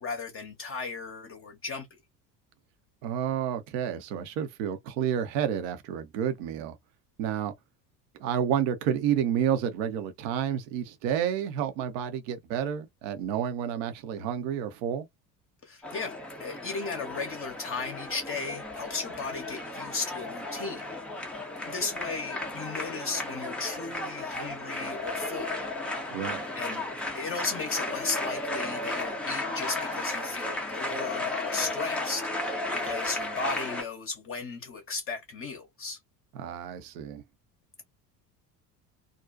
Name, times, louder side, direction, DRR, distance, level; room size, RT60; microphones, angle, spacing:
voice 1, 0.0-1.9 15.6-16.1 16.4-20.8 21.1-25.5 26.5-26.8 27.1-36.0, left 4 dB, 25° left, 0.7 m, -36 dB
voice 2, 3.0-6.8 7.2-7.5 8.2-15.1 26.1-26.4 36.3-37.2, right 9 dB, 50° right, 0.6 m, -30 dB
sound 1, 15.8-33.8, left 2 dB, 5° left, 0.3 m, -34 dB
2.4 x 2.1 x 2.3 m
figure-of-eight pair, 65°, 50 cm